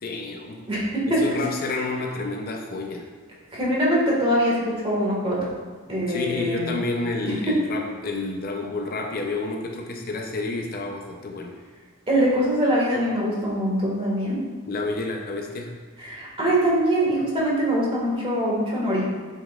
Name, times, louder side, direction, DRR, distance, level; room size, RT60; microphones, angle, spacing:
voice 1, 0.0-0.6 1.1-3.1 6.1-11.5 14.7-15.7, left 3 dB, 45° left, 2 dB, 0.6 m, -29 dB
voice 2, 0.7-1.4 3.5-5.4 5.9-6.7 7.2-7.3 12.1-14.4 16.0-19.1, equal, 30° right, -5 dB, 1.7 m, -23 dB
8.1 x 5.5 x 2.4 m, 1.5 s
head